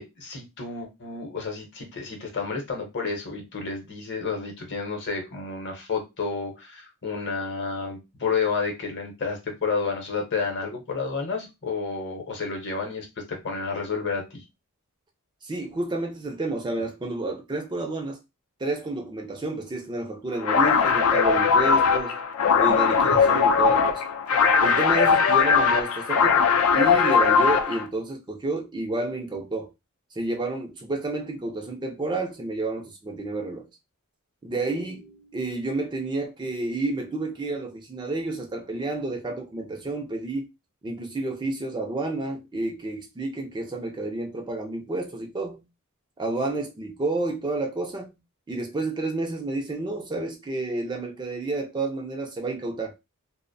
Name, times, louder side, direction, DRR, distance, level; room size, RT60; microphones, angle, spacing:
voice 1, 0.0-14.4, left 4 dB, 50° left, 0.8 m, -30 dB
voice 2, 15.4-18.2 18.6-22.2 22.6-24.0 24.6-29.7 30.2-33.7 34.4-40.5 40.8-45.6 46.2-48.2 48.5-53.0, right 2 dB, 20° right, 0.4 m, -30 dB
sound 1, 20.4-27.8, left 6 dB, 75° left, 0.4 m, -20 dB
2.5 x 2.1 x 2.5 m
head